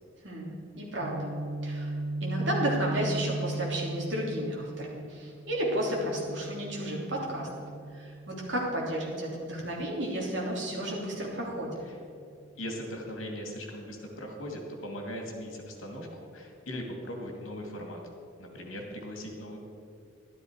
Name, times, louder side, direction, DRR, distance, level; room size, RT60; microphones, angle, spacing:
voice 1, 0.2-1.3 1.6-1.9 2.2-7.5 7.9-11.8, right 1 dB, 60° right, -3 dB, 3.2 m, -32 dB
Guitar, 1.0-8.9, right 2 dB, 90° right, 1.1 m, -37 dB
voice 2, 12.6-18.0 18.4-19.6, equal, 80° left, 2 dB, 2.4 m, -39 dB
12.5 x 12.0 x 4.9 m, 2.4 s
head